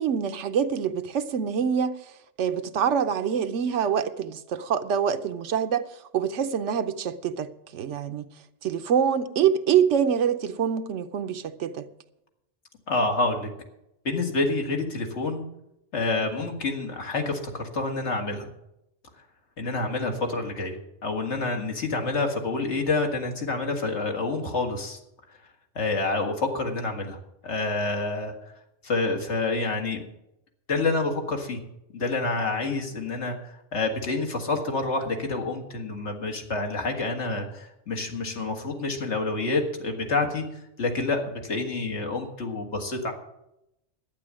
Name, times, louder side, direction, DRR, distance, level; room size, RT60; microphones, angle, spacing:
voice 1, 0.0-2.0 2.4-5.8 6.1-8.3 8.6-11.9, right 8 dB, 80° right, 1.1 m, -25 dB
voice 2, 12.9-13.5 14.1-15.4 15.9-18.5 19.6-25.0 25.8-27.2 27.4-28.3 28.8-30.0 30.7-31.6 31.9-40.4 40.8-43.1, left 3 dB, 70° left, 2.0 m, -28 dB
11.5 x 8.8 x 7.4 m
omnidirectional pair, 1.2 m